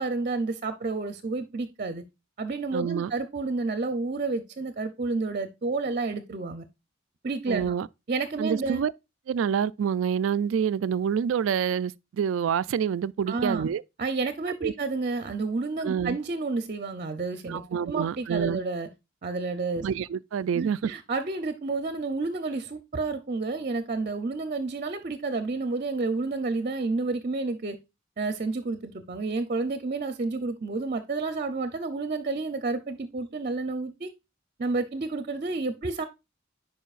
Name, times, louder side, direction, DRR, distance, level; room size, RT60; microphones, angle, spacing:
voice 1, 0.0-2.0 2.4-6.7 7.2-7.7 8.1-8.8 13.3-13.7 14.0-18.9 19.2-19.9 20.5-27.8 28.2-34.1 34.6-36.0, right 3 dB, 45° right, 0.6 m, -30 dB
voice 2, 2.7-3.1 7.5-7.9 8.4-8.9 9.3-13.8 14.6-14.7 15.8-16.2 17.5-18.6 19.8-20.9, right 7 dB, 85° right, 0.3 m, -27 dB
10.0 x 4.7 x 2.4 m
head